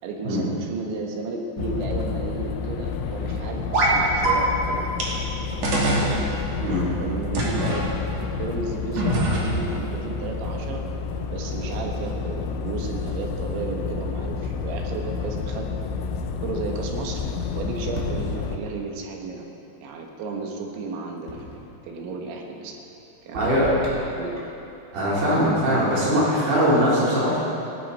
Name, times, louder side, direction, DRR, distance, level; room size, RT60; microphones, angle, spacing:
voice 1, 0.0-4.9 5.7-6.3 6.9-7.8 8.3-10.8 11.3-15.7 16.3-19.5 19.8-22.8 23.2-24.4, right 3 dB, 90° right, 1 dB, 3.9 m, -33 dB
sound 1, 1.6-18.6, left 5 dB, 85° left, 3.2 m, -30 dB
sound 2, 3.7-4.0 4.2-4.3 5.0-5.1 5.6-6.1 7.3-7.8 9.0-9.7, right 2 dB, 40° right, 3.0 m, -22 dB
sound 3, 17.9-19.0 21.3-21.8 23.3-24.6, equal, 15° right, 3.2 m, -37 dB
voice 2, 23.3-23.7 24.9-27.4, equal, 65° right, -8 dB, 5.9 m, -21 dB
18.0 x 17.5 x 4.3 m, 2.9 s
omnidirectional pair, 5.1 m